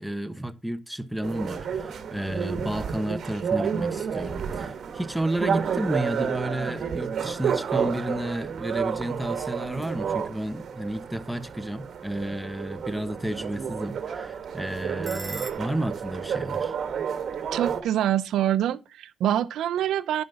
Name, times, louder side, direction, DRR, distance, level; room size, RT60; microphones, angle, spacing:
voice 1, 0.0-16.7, right 1 dB, 5° right, 1.1 m, -32 dB
sound 1, 1.2-17.8, right 7 dB, 60° right, 1.3 m, -30 dB
sound 2, 13.8-15.5, right 3 dB, 25° right, 2.6 m, -50 dB
voice 2, 17.5-20.2, right 11 dB, 80° right, 0.6 m, -25 dB
10.5 x 5.3 x 5.8 m
cardioid pair, 90°, 0 cm